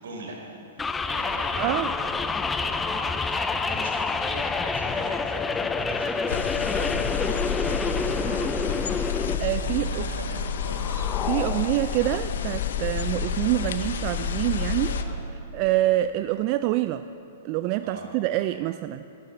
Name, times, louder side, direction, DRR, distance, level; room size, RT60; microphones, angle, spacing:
voice 1, 0.0-9.1 9.6-11.1 14.9-15.2 17.8-18.0, right 2 dB, 80° right, -1 dB, 4.0 m, -41 dB
sound 1, 0.8-9.4, left 4 dB, 15° left, 0.5 m, -27 dB
voice 2, 1.6-1.9 9.4-10.1 11.2-14.9 15.5-17.0 17.4-19.1, right 15 dB, 45° right, 12 dB, 0.3 m, -26 dB
sound 2, 6.3-15.0, left 6 dB, 70° left, 0.8 m, -29 dB
sound 3, 9.6-13.6, left 6 dB, 30° left, 0.9 m, -38 dB
12.5 x 10.5 x 7.2 m, 2.8 s
hypercardioid pair, 120°, 0 cm